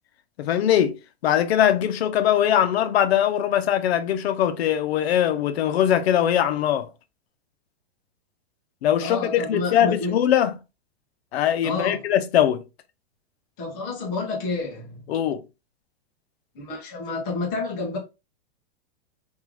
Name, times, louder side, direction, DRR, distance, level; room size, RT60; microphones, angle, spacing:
voice 1, 0.4-6.9 8.8-10.6 11.3-12.6 15.1-15.4, left 10 dB, 75° left, 0.6 m, -21 dB
voice 2, 9.0-10.1 11.6-12.0 13.6-15.0 16.5-18.0, left 3 dB, 10° left, 0.4 m, -29 dB
3.6 x 2.4 x 3.0 m
supercardioid pair, 175°, 32 cm